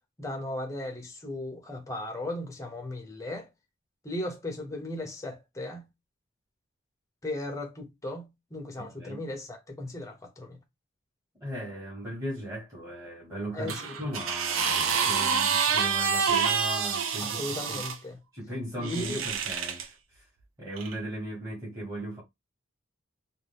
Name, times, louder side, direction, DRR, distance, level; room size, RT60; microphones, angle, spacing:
voice 1, 0.2-3.5 4.0-5.9 7.2-10.6 13.5-13.8 17.2-18.2 18.8-19.2, left 1 dB, 15° left, 0.5 m, -36 dB
voice 2, 8.8-9.2 11.4-17.9 18.3-20.2 20.6-22.2, right 1 dB, 15° right, 1.2 m, -37 dB
sound 1, 13.7-18.0 18.8-19.9 20.8-20.9, right 6 dB, 80° right, 0.5 m, -27 dB
2.5 x 2.3 x 3.3 m
head